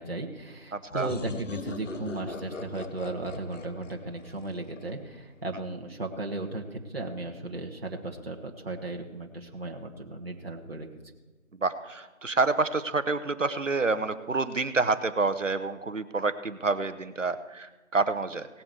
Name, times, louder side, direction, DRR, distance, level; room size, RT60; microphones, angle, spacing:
voice 1, 0.0-10.9, right 2 dB, 45° right, 0 dB, 1.4 m, -36 dB
voice 2, 0.7-1.1 11.6-18.5, right 3 dB, 60° right, 11 dB, 0.9 m, -28 dB
sound 1, 0.9-5.5, left 4 dB, 65° left, 0.7 m, -41 dB
18.0 x 7.2 x 4.8 m, 1.2 s
figure-of-eight pair, 170°, 41 cm